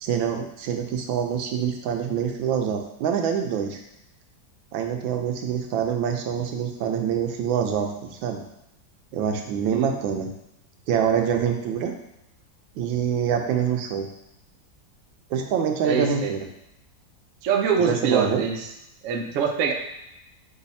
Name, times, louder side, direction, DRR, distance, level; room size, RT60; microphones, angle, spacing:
voice 1, 0.0-3.8 4.7-8.4 9.1-10.3 10.9-11.9 12.8-14.1 15.3-16.5 17.8-18.4, right 8 dB, 90° right, 4 dB, 1.4 m, -25 dB
voice 2, 15.8-16.3 17.4-18.6 19.0-19.7, right 6 dB, 75° right, 2 dB, 0.7 m, -24 dB
5.1 x 2.3 x 4.0 m, 0.84 s
omnidirectional pair, 2.1 m